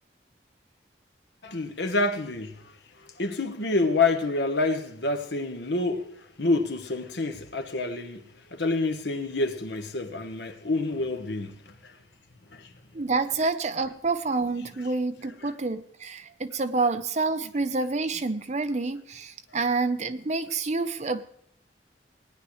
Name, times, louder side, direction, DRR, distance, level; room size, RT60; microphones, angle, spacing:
voice 1, 1.4-2.6 3.2-8.2 8.5-11.5 11.8-12.0 12.5-12.7, left 3 dB, 75° left, 1.3 m, -27 dB
voice 2, 12.9-21.2, right 3 dB, 40° right, 0.7 m, -28 dB
18.0 x 10.0 x 3.2 m
head